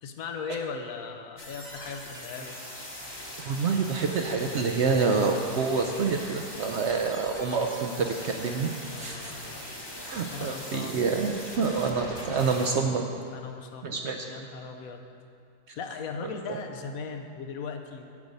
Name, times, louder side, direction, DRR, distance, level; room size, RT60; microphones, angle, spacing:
voice 1, 0.0-2.5 8.9-9.7 10.3-11.0 13.3-15.0 15.8-18.1, left 5 dB, 70° left, 5 dB, 1.1 m, -38 dB
sound 1, 1.4-12.7, left 1 dB, 20° left, 1.1 m, -41 dB
voice 2, 3.5-8.7 9.0-9.3 10.0-13.1 13.8-14.4, right 5 dB, 65° right, 3 dB, 0.7 m, -27 dB
8.3 x 8.1 x 5.3 m, 2.4 s
omnidirectional pair, 1.6 m